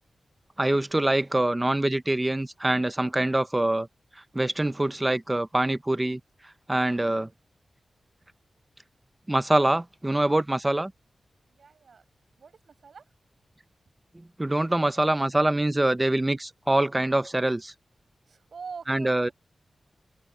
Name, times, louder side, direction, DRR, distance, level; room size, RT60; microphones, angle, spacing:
voice 1, 0.6-3.9 4.3-6.2 6.7-7.3 9.3-10.9 14.1-17.7 18.9-19.3, right 1 dB, 15° right, 0.7 m, -24 dB
voice 2, 11.5-12.0 12.4-13.1 18.3-19.3, right 5 dB, 65° right, 7.0 m, -44 dB
open air
wide cardioid pair, 135°, 0 cm